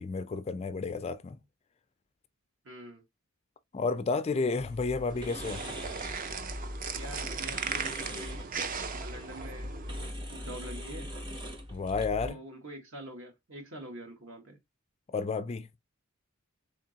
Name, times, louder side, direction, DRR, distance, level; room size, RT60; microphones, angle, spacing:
voice 1, 0.0-1.4 3.7-5.6 11.7-12.4 15.1-15.7, left 4 dB, 30° left, 0.3 m, -31 dB
voice 2, 2.6-3.0 6.9-8.4 9.0-10.0 10.3-11.1 12.2-14.6, right 1 dB, 65° right, 1.4 m, -45 dB
sound 1, 4.6-12.3, equal, 20° right, 0.8 m, -41 dB
sound 2, 5.1-10.1, right 5 dB, 40° right, 0.5 m, -37 dB
3.7 x 3.6 x 2.7 m
head